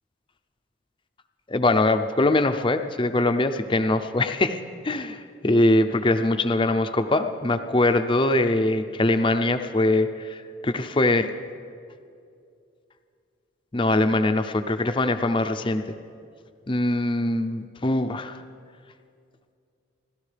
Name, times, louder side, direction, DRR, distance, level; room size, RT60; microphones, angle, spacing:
voice 1, 1.5-4.6 4.8-10.4 10.6-11.3 13.7-15.8 16.7-18.4, left 2 dB, 25° left, 7 dB, 0.5 m, -22 dB
29.0 x 13.0 x 3.4 m, 2.3 s
head